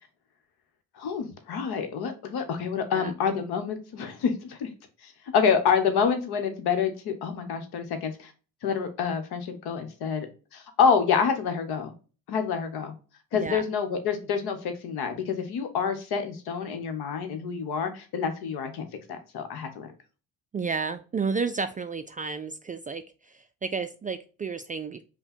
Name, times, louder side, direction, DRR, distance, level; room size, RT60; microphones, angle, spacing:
voice 1, 1.0-4.7 5.0-8.3 8.6-10.3 10.5-11.9 12.3-12.9 13.3-19.9, left 6 dB, 65° left, 7 dB, 1.1 m, -27 dB
voice 2, 13.3-13.6 20.5-23.0 23.3-25.0, right 5 dB, 20° right, 9 dB, 0.3 m, -31 dB
5.5 x 2.3 x 4.2 m, 0.35 s
hypercardioid pair, 50°, 42 cm